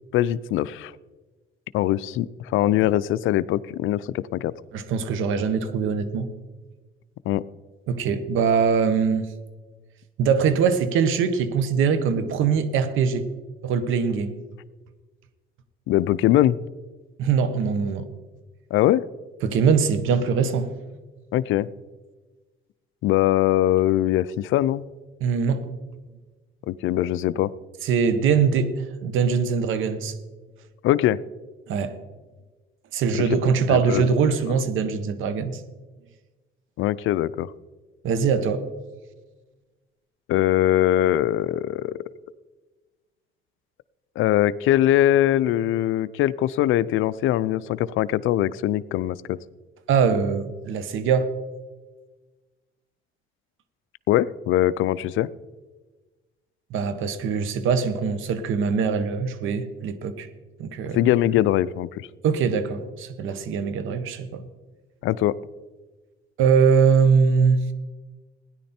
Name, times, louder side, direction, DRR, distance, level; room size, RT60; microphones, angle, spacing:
voice 1, 0.1-0.9 1.7-2.3 2.5-4.5 7.3-7.4 15.9-16.6 18.7-19.0 21.3-21.7 23.0-24.8 26.7-27.5 30.8-31.2 33.7-34.1 36.8-37.5 40.3-41.9 44.2-49.4 54.1-55.3 60.9-62.1 65.0-65.3, left 13 dB, 85° left, 18 dB, 0.5 m, -21 dB
voice 2, 4.7-6.3 7.9-9.3 10.2-13.3 13.6-14.4 17.2-18.1 19.4-20.7 25.2-25.7 27.8-28.7 29.0-30.1 31.7-32.0 32.9-35.6 38.0-38.6 49.9-51.3 56.7-60.3 60.6-61.1 62.2-64.4 66.4-67.6, right 6 dB, 85° right, 11 dB, 1.3 m, -22 dB
16.5 x 10.5 x 4.4 m, 1.3 s
cardioid pair, 90°, 20 cm